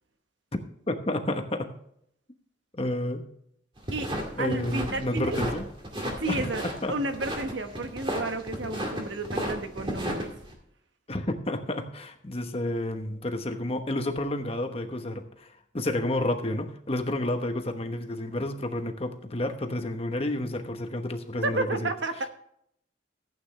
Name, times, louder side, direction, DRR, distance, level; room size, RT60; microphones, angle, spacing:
voice 1, 0.9-1.7 2.8-3.2 4.4-5.6 6.3-7.0 11.1-15.5 15.7-21.9, left 1 dB, 30° left, 6 dB, 1.1 m, -30 dB
sound 1, 3.8-10.5, equal, 25° right, 2.2 m, -34 dB
voice 2, 3.9-5.4 6.2-10.3 21.4-22.3, right 2 dB, 75° right, 7 dB, 1.2 m, -32 dB
15.0 x 8.9 x 3.3 m, 0.70 s
head